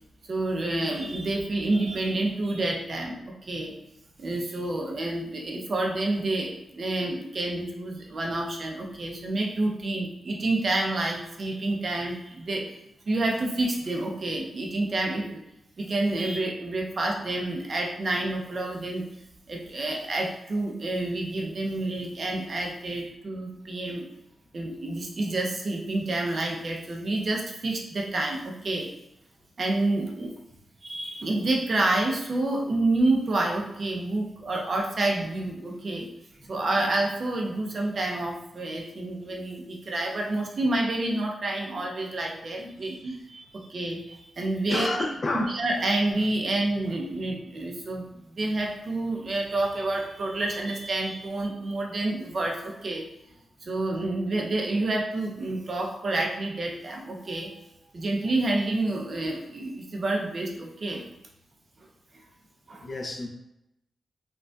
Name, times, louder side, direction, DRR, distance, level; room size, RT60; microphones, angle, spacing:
voice 1, 0.3-3.7 4.2-12.7 13.1-15.4 15.8-19.1 19.5-24.0 24.5-28.9 29.6-30.3 30.8-36.1 36.5-44.9 45.3-48.0 48.3-53.0 53.6-57.5 57.9-61.0 62.7-62.9, right 2 dB, 40° right, 0 dB, 0.6 m, -28 dB
voice 2, 44.7-45.5 62.8-63.3, left 2 dB, 35° left, 2 dB, 0.5 m, -29 dB
5.0 x 2.3 x 2.3 m, 0.85 s
wide cardioid pair, 160°, 0 cm